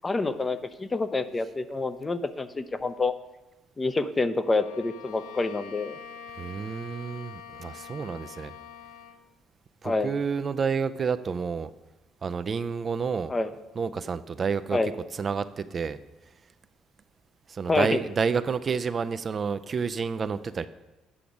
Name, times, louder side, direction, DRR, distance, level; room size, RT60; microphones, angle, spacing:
voice 1, 0.0-3.1 3.8-5.9 9.8-10.1 13.3-13.5 14.7-14.9 17.7-18.0, left 3 dB, 25° left, 11 dB, 0.6 m, -27 dB
Bowed string instrument, 4.4-9.3, left 7 dB, 80° left, 0.5 m, -45 dB
voice 2, 6.4-8.5 9.8-11.7 12.2-13.3 13.8-16.0 17.5-20.7, right 5 dB, 45° right, 11 dB, 0.4 m, -29 dB
8.5 x 5.8 x 5.1 m, 1.0 s
hypercardioid pair, 60°, 0 cm